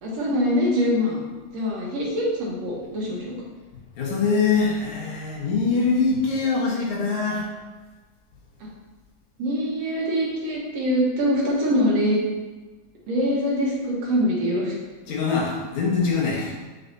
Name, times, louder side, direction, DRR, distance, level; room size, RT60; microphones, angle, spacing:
voice 1, 0.0-1.2 1.5-3.3 9.4-12.2 13.1-14.7, equal, 65° right, -4 dB, 2.3 m, -23 dB
voice 2, 4.0-7.5 15.1-16.6, left 4 dB, 75° left, -3 dB, 2.7 m, -23 dB
8.1 x 6.0 x 2.7 m, 1.3 s
omnidirectional pair, 3.4 m